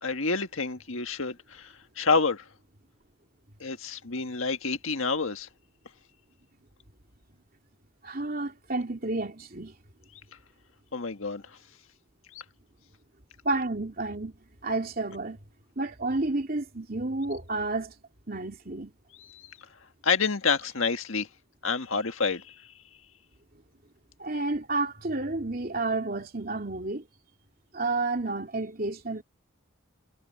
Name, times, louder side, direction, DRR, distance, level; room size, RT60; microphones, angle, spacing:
voice 1, 0.0-2.4 3.6-5.5 10.9-11.4 12.3-12.4 19.2-19.6 20.0-21.3 21.6-22.5, left 4 dB, 75° left, 1.7 m, -28 dB
voice 2, 8.0-9.7 13.4-14.4 14.6-15.4 15.8-17.9 18.3-18.9 24.2-27.0 27.7-29.2, right 2 dB, 45° right, 2.9 m, -30 dB
head